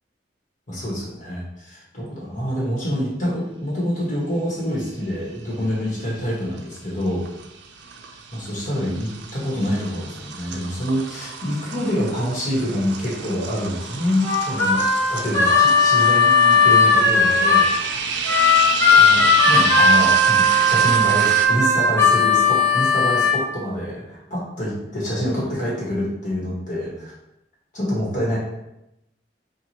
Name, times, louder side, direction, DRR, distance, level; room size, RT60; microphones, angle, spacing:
voice 1, 0.7-7.3 8.3-14.8 15.1-17.7 18.9-27.1 27.7-28.4, equal, 45° left, -5 dB, 1.3 m, -26 dB
sound 1, 5.1-5.6 5.9-21.5, right 5 dB, 80° right, 0.4 m, -30 dB
Harmonica, 14.2-17.7 18.2-23.4, left 3 dB, 15° left, 1.0 m, -16 dB
4.5 x 2.4 x 2.8 m, 0.86 s
head